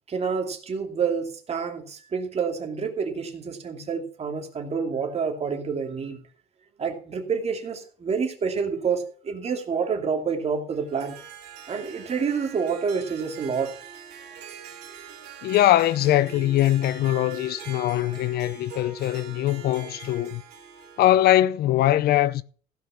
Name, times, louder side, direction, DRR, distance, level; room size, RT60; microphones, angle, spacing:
voice 1, 0.1-6.2 6.8-11.2 11.7-13.8 17.2-17.4, right 6 dB, 40° right, 2.5 m, -28 dB
Harp, 10.7-21.2, right 8 dB, 85° right, 3.3 m, -44 dB
voice 2, 15.4-20.4 21.0-22.4, left 13 dB, 70° left, 0.6 m, -21 dB
16.0 x 5.6 x 5.8 m
cardioid pair, 110°, 17 cm